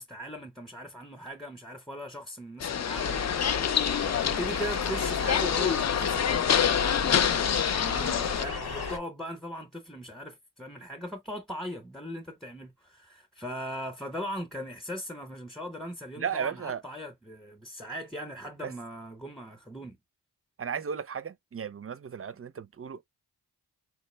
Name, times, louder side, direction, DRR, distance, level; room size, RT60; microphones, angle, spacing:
voice 1, 0.0-3.3 3.6-20.0, equal, ahead, 0.8 m, -39 dB
sound 1, 2.6-8.4, left 8 dB, 45° left, 0.4 m, -27 dB
sound 2, 3.0-9.0, left 4 dB, 70° left, 1.1 m, -34 dB
voice 2, 16.2-16.8 18.6-18.7 20.6-23.0, right 7 dB, 35° right, 0.4 m, -34 dB
4.7 x 2.1 x 3.2 m
cardioid pair, 65°, 40 cm